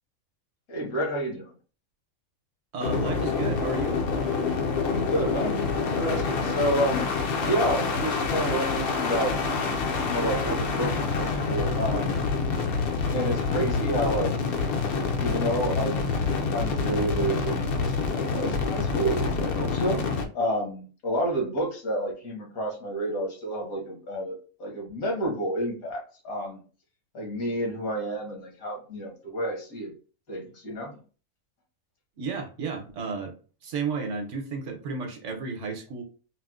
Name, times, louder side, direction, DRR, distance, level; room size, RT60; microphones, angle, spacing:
voice 1, 0.7-1.5 4.9-7.1 7.4-9.3 10.1-12.2 13.1-14.3 15.2-16.0 16.5-20.0 20.3-26.6 27.1-29.9 30.3-30.9, right 1 dB, 80° left, 0 dB, 1.6 m, -30 dB
voice 2, 2.7-4.0 32.2-33.3 33.6-36.0, right 5 dB, 65° right, 3 dB, 0.9 m, -32 dB
sound 1, 2.8-20.3, left 4 dB, 65° left, 0.6 m, -27 dB
4.2 x 2.0 x 2.3 m, 0.37 s
omnidirectional pair, 1.5 m